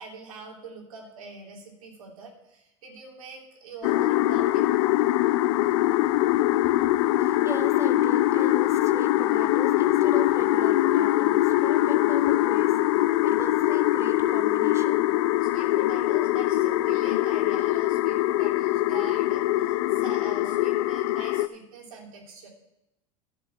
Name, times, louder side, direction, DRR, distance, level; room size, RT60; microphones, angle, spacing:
voice 1, 0.0-4.7 15.4-22.5, right 4 dB, 90° right, 0 dB, 3.3 m, -44 dB
sound 1, 3.8-21.5, left 15 dB, 70° left, 0.6 m, -23 dB
voice 2, 7.1-12.7 13.2-15.1, right 3 dB, 15° right, 7 dB, 1.4 m, -39 dB
11.0 x 7.4 x 7.4 m, 0.89 s
hypercardioid pair, 100°, 17 cm